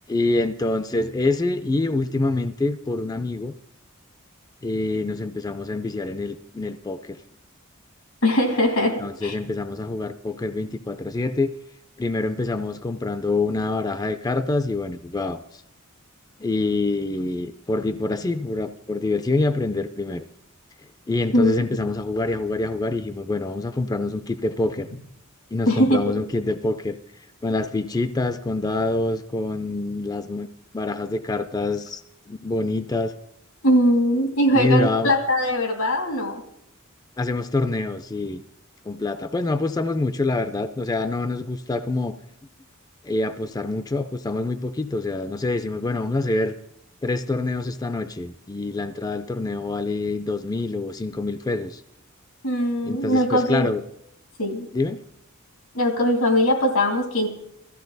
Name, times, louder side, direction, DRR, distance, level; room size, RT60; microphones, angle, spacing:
voice 1, 0.1-3.5 4.6-7.2 9.0-11.5 12.0-15.6 16.4-20.2 21.1-24.9 25.5-27.0 27.4-30.5 30.7-32.0 32.3-33.1 34.5-35.1 37.2-38.4 38.9-42.2 43.0-46.5 47.0-51.8 52.8-53.8 54.7-55.0, left 2 dB, 20° left, 10 dB, 0.4 m, -26 dB
voice 2, 8.2-9.4 21.3-21.5 25.7-26.1 33.6-36.4 52.4-53.7 54.4-54.7 55.7-57.3, equal, 90° left, 3 dB, 2.7 m, -21 dB
16.5 x 14.0 x 4.0 m, 0.81 s
head